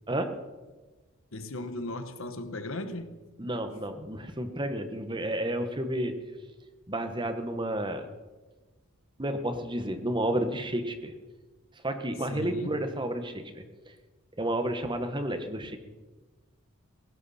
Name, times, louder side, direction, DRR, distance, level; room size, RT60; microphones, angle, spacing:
voice 1, 1.3-3.2 12.3-12.7, left 1 dB, 65° left, 1.2 m, -37 dB
voice 2, 3.4-6.2 6.9-8.1 9.2-11.1 11.8-13.6 14.4-15.8, right 1 dB, 20° right, 1.2 m, -31 dB
17.0 x 16.0 x 4.2 m
head